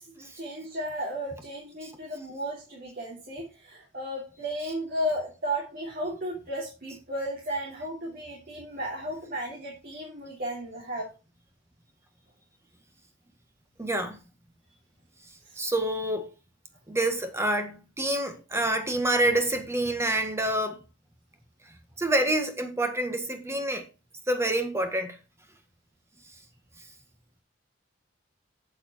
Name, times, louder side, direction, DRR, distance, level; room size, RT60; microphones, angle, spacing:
voice 1, 0.0-11.1 15.4-15.6, equal, 50° right, 3.0 m, -34 dB
voice 2, 13.8-14.2 15.6-16.3 16.9-20.8 22.0-23.8 24.3-25.2, right 1 dB, 15° right, 1.7 m, -27 dB
8.6 x 7.5 x 4.5 m
head